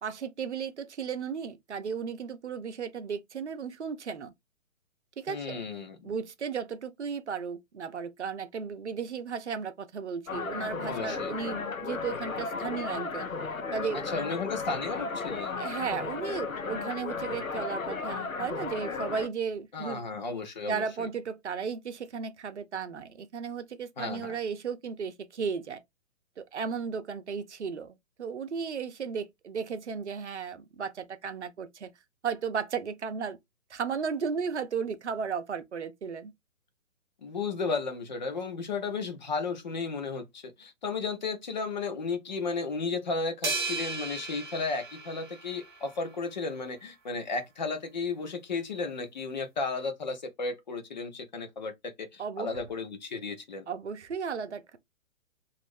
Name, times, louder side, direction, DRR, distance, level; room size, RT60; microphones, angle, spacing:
voice 1, 0.0-4.3 5.2-5.7 6.0-13.3 13.7-14.0 15.6-20.0 20.6-25.8 26.4-31.9 32.2-33.4 33.7-36.3 52.2-52.5 53.7-54.6, right 6 dB, 60° right, 0.7 m, -35 dB
voice 2, 5.3-6.1 10.8-11.3 13.9-15.6 19.7-20.8 24.0-24.4 37.2-53.7, left 4 dB, 35° left, 0.6 m, -34 dB
sound 1, 10.3-19.3, left 4 dB, 90° left, 0.7 m, -35 dB
sound 2, 43.4-45.9, right 3 dB, 20° right, 0.6 m, -35 dB
2.9 x 2.5 x 3.4 m
figure-of-eight pair, 130°, 40 cm